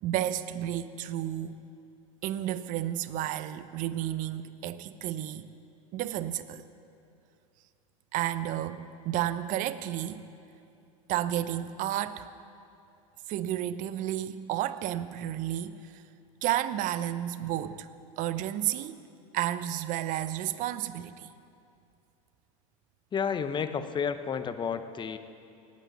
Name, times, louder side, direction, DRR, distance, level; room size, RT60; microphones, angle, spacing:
voice 1, 0.0-1.6 2.2-5.5 5.9-6.6 8.1-10.3 11.1-12.3 13.3-16.0 16.4-17.9 18.2-19.0 19.3-21.3, right 12 dB, 45° right, 13 dB, 0.7 m, -32 dB
voice 2, 23.1-25.2, left 6 dB, 25° left, 10 dB, 0.9 m, -31 dB
18.5 x 8.5 x 7.3 m, 2.6 s
hypercardioid pair, 95°, 18 cm